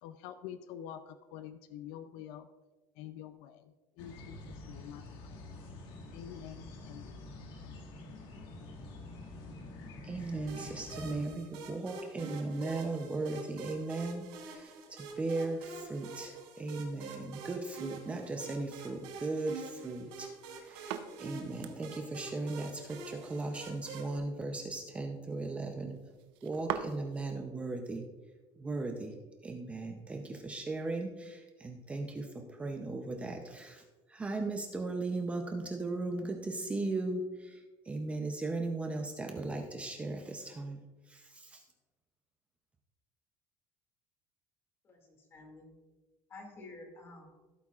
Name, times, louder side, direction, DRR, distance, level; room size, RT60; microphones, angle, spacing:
voice 1, 0.0-2.5 3.0-5.5 6.1-7.2, left 10 dB, 75° left, 11 dB, 0.5 m, -47 dB
sound 1, 4.0-11.3, left 2 dB, 55° left, 1.6 m, -47 dB
voice 2, 10.0-20.3 20.6-26.0 26.4-28.1 28.6-29.2 29.4-33.8 34.1-40.8 41.1-41.6, right 2 dB, 15° right, 4 dB, 0.6 m, -37 dB
sound 2, 10.5-24.2, right 4 dB, 85° right, 3.2 m, -47 dB
sound 3, 20.3-27.3, right 9 dB, 65° right, 0.7 m, -45 dB
voice 3, 44.8-45.7 46.3-47.3, left 2 dB, 25° left, 2 dB, 2.3 m, -50 dB
16.0 x 8.4 x 2.4 m, 1.3 s
cardioid pair, 170°, 9 cm